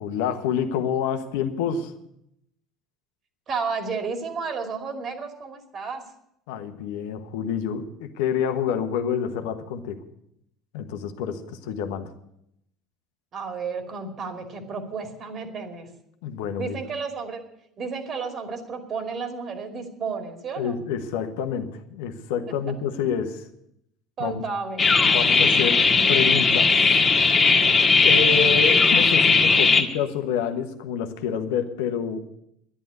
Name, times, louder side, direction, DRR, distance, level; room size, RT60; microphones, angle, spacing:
voice 1, 0.0-1.9 6.5-10.0 10.7-12.1 16.2-16.7 20.6-23.5 24.2-24.4 25.0-26.8 28.0-32.3, left 7 dB, 70° left, 8 dB, 1.2 m, -28 dB
voice 2, 3.5-6.0 13.3-15.9 16.6-17.4 17.8-20.8 24.2-24.9 29.5-29.7, right 5 dB, 45° right, 5 dB, 2.6 m, -32 dB
sound 1, 24.8-29.8, left 4 dB, 30° left, 1.7 m, -18 dB
11.0 x 11.0 x 8.1 m, 0.76 s
hypercardioid pair, 65°, 0 cm